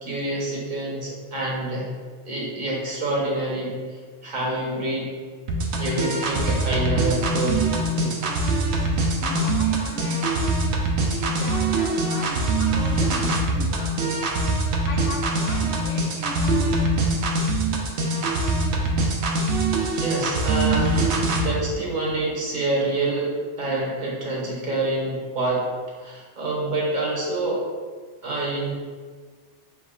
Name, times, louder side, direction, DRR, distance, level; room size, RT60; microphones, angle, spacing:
voice 1, 0.0-1.9 2.2-5.1 5.8-8.2 19.8-25.7 26.0-27.6 28.2-28.7, right 2 dB, 45° right, -3 dB, 1.0 m, -27 dB
sound 1, 5.5-21.5, right 2 dB, 70° right, 0.9 m, -23 dB
voice 2, 8.9-10.3 11.0-14.4 14.9-16.9, left 2 dB, 85° left, -4 dB, 1.0 m, -38 dB
4.9 x 3.5 x 2.4 m, 1.5 s
omnidirectional pair, 1.2 m